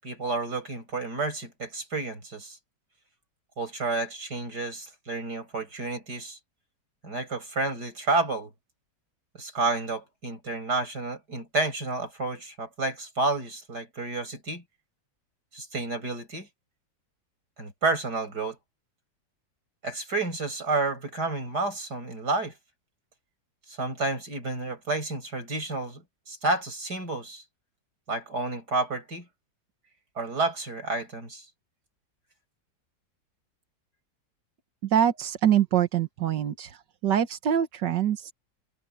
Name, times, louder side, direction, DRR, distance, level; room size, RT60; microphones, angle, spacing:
voice 1, 0.0-2.6 3.6-6.4 7.0-8.5 9.3-14.6 15.5-16.5 17.6-18.6 19.8-22.5 23.7-27.4 28.1-29.3 30.2-31.4, right 3 dB, 65° right, 7.8 m, -30 dB
voice 2, 34.9-36.8 37.0-38.3, right 9 dB, 80° right, 1.9 m, -24 dB
omnidirectional pair, 1.9 m